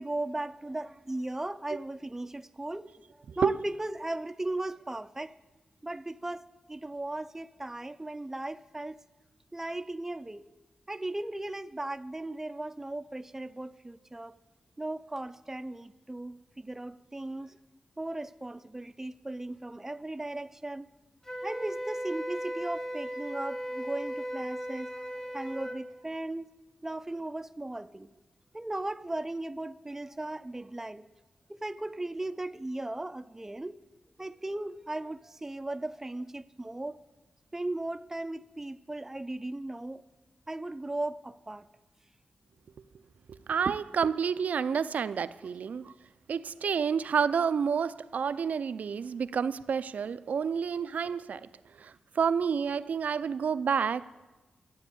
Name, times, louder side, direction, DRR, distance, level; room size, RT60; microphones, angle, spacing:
voice 1, 0.0-2.9 3.4-5.3 5.8-9.0 9.5-10.4 10.9-14.4 14.8-17.6 18.0-20.9 21.4-26.5 26.8-28.1 28.5-31.0 31.5-33.8 34.2-37.0 37.5-40.0 40.5-41.6, right 2 dB, 15° right, 0.5 m, -37 dB
Wind instrument woodwind instrument, 21.2-25.8, equal, 20° left, 1.7 m, -37 dB
voice 2, 43.3-45.9 46.3-51.5 51.8-54.3, right 6 dB, 75° right, 0.4 m, -29 dB
12.0 x 8.5 x 8.5 m
wide cardioid pair, 85°, 3 cm